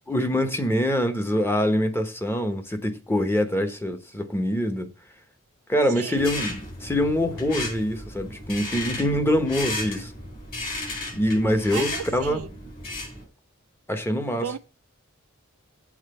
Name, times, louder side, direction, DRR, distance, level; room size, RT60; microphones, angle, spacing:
voice 1, 0.1-4.9 5.7-10.1 11.1-12.4 13.9-14.6, equal, 10° left, 1.0 m, -24 dB
sound 1, 6.1-13.2, left 2 dB, 45° left, 4.1 m, -34 dB
voice 2, 11.7-12.5 14.4-14.6, right 8 dB, 75° right, 0.4 m, -34 dB
7.4 x 3.9 x 6.7 m
head